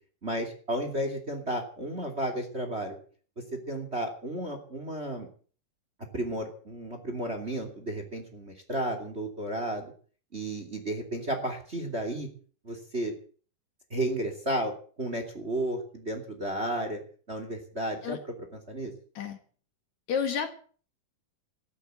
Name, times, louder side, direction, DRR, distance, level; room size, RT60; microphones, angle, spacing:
voice 1, 0.2-3.0 3.5-5.3 6.1-9.9 10.3-12.3 12.6-13.1 13.9-14.7 15.0-17.0 17.3-18.2 18.7-18.9, right 1 dB, 20° right, 5 dB, 2.5 m, -33 dB
voice 2, 20.1-20.5, left 7 dB, 60° left, 7 dB, 2.8 m, -30 dB
14.0 x 12.0 x 8.0 m, 0.43 s
omnidirectional pair, 3.9 m